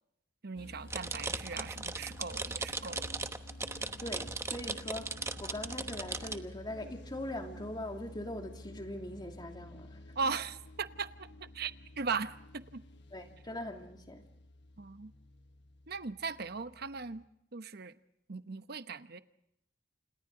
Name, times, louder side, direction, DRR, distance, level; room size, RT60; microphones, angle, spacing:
voice 1, 0.4-3.1 10.2-11.3 11.5-12.8 14.8-15.1 15.9-17.2 17.5-17.9 18.3-19.2, right 5 dB, 60° right, 0.9 m, -38 dB
sound 1, 0.6-17.2, left 1 dB, 65° left, 1.3 m, -51 dB
sound 2, 0.9-6.4, right 3 dB, 15° right, 1.0 m, -38 dB
voice 2, 4.0-10.0 13.1-14.2, left 1 dB, 25° left, 2.6 m, -41 dB
30.0 x 28.0 x 3.8 m
head